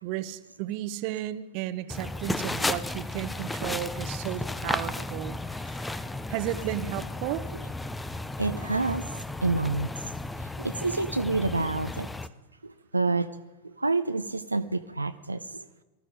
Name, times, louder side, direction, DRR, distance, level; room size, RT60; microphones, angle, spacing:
voice 1, 0.0-6.0 6.3-7.4, right 13 dB, 45° right, 15 dB, 0.8 m, -34 dB
sound 1, 1.9-12.3, left 2 dB, 5° left, 0.6 m, -34 dB
voice 2, 8.4-9.0 9.4-9.9 10.6-12.1 12.9-13.3 13.8-15.6, right 3 dB, 80° right, 10 dB, 0.5 m, -27 dB
18.5 x 13.0 x 5.1 m, 1.2 s
figure-of-eight pair, 90°, 0 cm